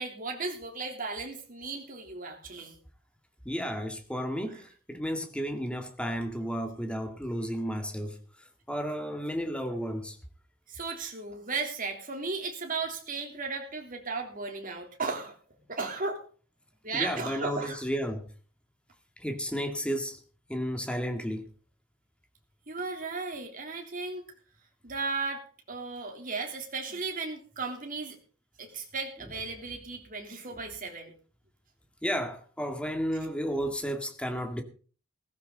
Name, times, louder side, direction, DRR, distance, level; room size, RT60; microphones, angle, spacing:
voice 1, 0.0-2.7 4.5-4.6 10.7-15.3 15.7-16.2 16.8-17.8 22.7-24.2 24.8-28.2 28.6-31.1, right 4 dB, 40° right, 3.4 m, -35 dB
voice 2, 3.5-8.2 8.7-10.2 16.9-18.3 19.2-20.2 20.5-21.5 32.0-34.6, equal, 5° left, 1.9 m, -32 dB
16.5 x 15.0 x 3.9 m
head